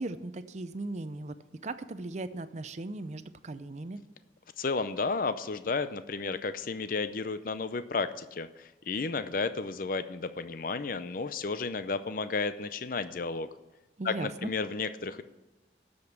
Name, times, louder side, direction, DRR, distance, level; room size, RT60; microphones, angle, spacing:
voice 1, 0.0-1.4 1.6-4.0 14.0-14.5, right 2 dB, 40° right, 12 dB, 0.5 m, -37 dB
voice 2, 4.6-13.5 14.0-15.2, left 4 dB, 50° left, 12 dB, 0.5 m, -32 dB
13.0 x 5.3 x 8.2 m, 1.1 s
head